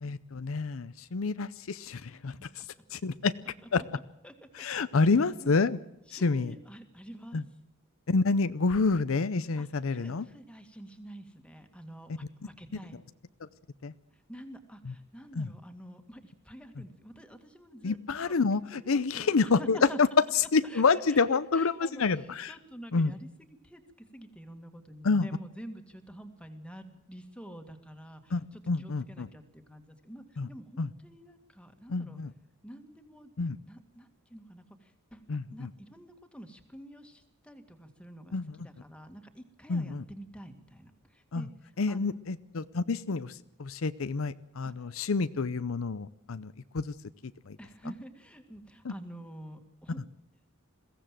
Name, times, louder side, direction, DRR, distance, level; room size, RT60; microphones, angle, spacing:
voice 1, 0.0-3.3 3.7-3.8 4.5-5.8 6.1-6.5 7.3-7.4 8.1-10.3 13.8-13.9 14.8-14.9 15.3-15.5 16.8-16.9 17.8-20.1 20.3-22.5 22.9-23.1 25.0-25.3 28.3-29.3 30.4-30.5 30.8-30.9 31.9-32.3 33.4-33.6 35.3-35.7 38.3-38.6 39.7-40.0 41.3-41.5 41.8-46.9 47.2-47.6 48.8-48.9, left 4 dB, 70° left, 14 dB, 0.6 m, -28 dB
voice 2, 2.1-2.7 3.7-4.7 4.9-5.5 6.1-7.4 9.6-13.0 14.1-18.0 18.2-18.3 18.7-20.0 20.6-21.2 21.5-23.3 23.6-32.2 32.6-33.3 33.7-35.2 35.5-41.5 41.9-42.1 44.6-44.9 47.6-50.0, equal, 5° left, 6 dB, 2.0 m, -48 dB
22.0 x 16.0 x 7.5 m, 0.88 s
head